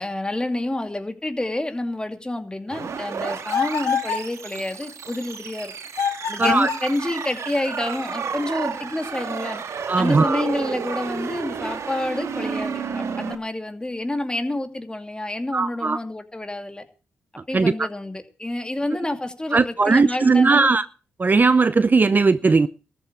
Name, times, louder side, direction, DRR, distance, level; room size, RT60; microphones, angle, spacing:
voice 1, 0.0-5.7 6.3-9.6 10.0-16.8 17.5-20.7, left 1 dB, 15° left, 8 dB, 2.5 m, -28 dB
sound 1, 2.7-13.3, right 6 dB, 65° right, 2.0 m, -31 dB
sound 2, 3.5-4.3 5.9-6.9, left 7 dB, 70° left, 3.8 m, -25 dB
voice 2, 6.4-6.7 9.9-10.4 15.5-16.0 17.5-17.7 19.5-20.9 21.2-22.7, right 4 dB, 35° right, 16 dB, 0.6 m, -18 dB
14.0 x 8.3 x 8.1 m, 0.36 s
supercardioid pair, 50°, 5 cm